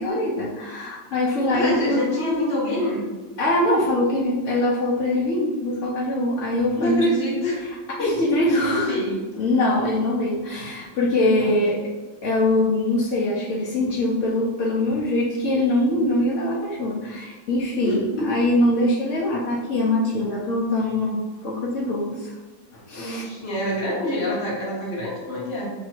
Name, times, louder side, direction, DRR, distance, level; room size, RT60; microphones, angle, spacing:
voice 1, 0.0-2.0 2.3-2.7 3.4-7.1 8.0-8.9 9.4-11.9 12.2-22.4 22.7-23.2, left 1 dB, 70° left, -5 dB, 0.7 m, -23 dB
voice 2, 1.5-3.0 6.6-7.7 8.0-9.2 11.2-11.5 17.8-18.3 22.9-25.7, left 1 dB, 45° left, -4 dB, 1.0 m, -26 dB
3.1 x 2.7 x 4.3 m, 1.2 s
omnidirectional pair, 2.1 m